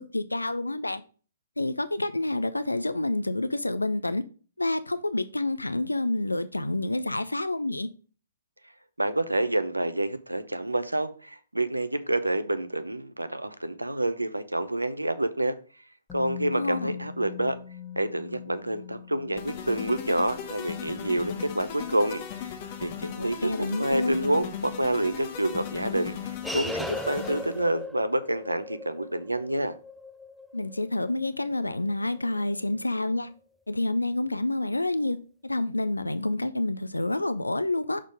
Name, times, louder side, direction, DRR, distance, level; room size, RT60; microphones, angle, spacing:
voice 1, 0.1-1.0 1.6-4.2 4.6-7.9 16.5-17.0 23.2-24.2 30.5-33.3 33.7-35.2 35.4-38.0, left 2 dB, 85° left, 0.4 m, -28 dB
voice 2, 9.0-15.6 16.1-17.6 18.0-22.2 22.8-26.1 26.5-29.7, right 1 dB, 85° right, 0.6 m, -28 dB
Musical instrument, 16.1-24.0 24.3-24.4, left 9 dB, 15° left, 1.0 m, -44 dB
sound 1, 19.4-27.7, left 8 dB, 40° left, 1.1 m, -37 dB
sound 2, 25.7-32.5, equal, ahead, 0.4 m, -39 dB
6.4 x 3.7 x 5.0 m
figure-of-eight pair, 120°, 0 cm